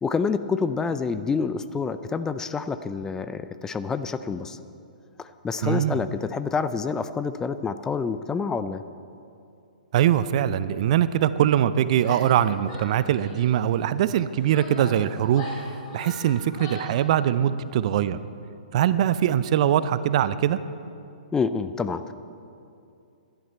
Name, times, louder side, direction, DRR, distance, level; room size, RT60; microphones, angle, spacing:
voice 1, 0.0-4.6 5.2-8.8 21.3-22.1, left 5 dB, 10° left, 12 dB, 0.4 m, -27 dB
voice 2, 5.6-6.0 9.9-15.5 15.9-18.2 18.7-20.6, right 10 dB, 50° right, 15 dB, 0.5 m, -22 dB
Female speech woman speaking / Yell, 12.0-12.4 12.7-13.5 14.2-17.0, left 1 dB, 45° left, 3.8 m, -40 dB
16.5 x 11.5 x 4.5 m, 2.6 s
figure-of-eight pair, 120°, 5 cm